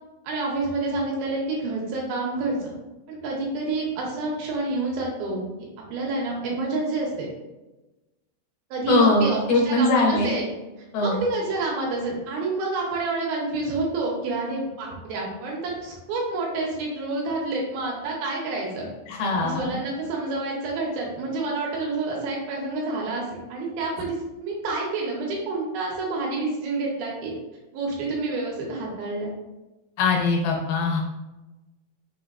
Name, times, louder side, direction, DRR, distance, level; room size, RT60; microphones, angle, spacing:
voice 1, 0.2-2.7 3.1-5.4 5.9-7.3 8.7-10.5 11.0-18.9 19.3-27.3 27.7-29.3, right 3 dB, 75° right, -2 dB, 2.4 m, -28 dB
voice 2, 8.9-10.3 10.9-11.2 19.1-19.8 30.0-31.0, left 2 dB, 75° left, -1 dB, 2.5 m, -21 dB
6.3 x 2.7 x 2.5 m, 1.1 s
omnidirectional pair, 4.5 m